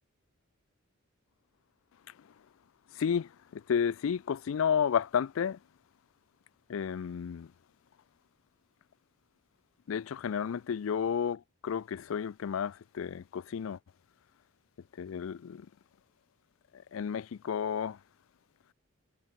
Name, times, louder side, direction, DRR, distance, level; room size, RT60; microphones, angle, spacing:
voice 1, 3.0-5.6 6.7-7.5 9.9-13.8 15.0-15.7 16.9-18.0, left 7 dB, 85° left, 0.4 m, -32 dB
head